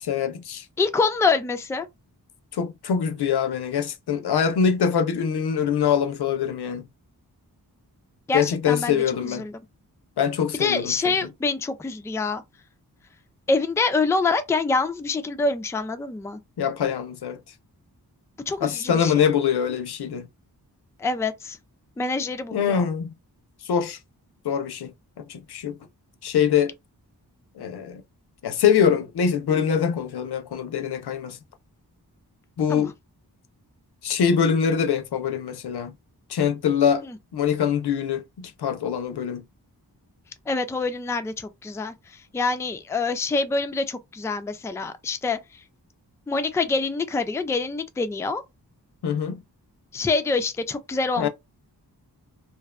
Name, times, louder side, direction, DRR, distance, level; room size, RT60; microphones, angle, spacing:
voice 1, 0.0-0.7 2.5-6.9 8.3-9.4 10.2-11.2 16.6-17.4 18.6-20.3 22.5-23.1 23.6-24.0 24.4-25.8 26.2-26.7 27.6-28.0 28.4-31.4 32.6-32.9 34.0-35.9 36.3-37.0 37.3-39.4 49.0-49.4 51.2-51.3, left 7 dB, 80° left, 0.5 m, -24 dB
voice 2, 0.8-1.9 8.3-9.0 9.2-9.5 10.6-12.4 13.5-16.4 18.5-19.3 21.0-21.6 22.0-22.8 32.7-32.8 40.5-41.9 42.3-45.4 46.3-48.4 49.9-51.3, left 3 dB, 10° left, 0.3 m, -25 dB
2.6 x 2.1 x 2.4 m
wide cardioid pair, 60°, 39 cm